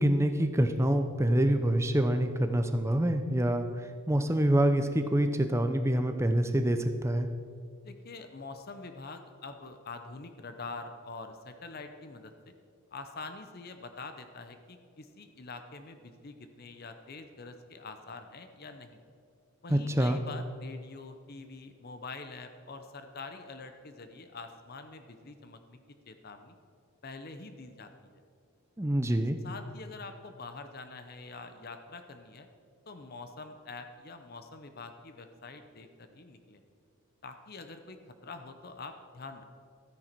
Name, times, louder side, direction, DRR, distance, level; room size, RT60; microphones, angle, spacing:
voice 1, 0.0-3.7 4.1-7.3 19.7-20.2 28.8-29.4, right 1 dB, 10° right, 8 dB, 0.6 m, -26 dB
voice 2, 7.8-12.5 12.9-19.0 19.6-25.8 26.1-26.6 27.0-28.1 29.4-32.5 32.9-36.6 37.2-39.4, left 3 dB, 45° left, 8 dB, 0.7 m, -45 dB
13.0 x 9.9 x 4.5 m, 2.3 s
head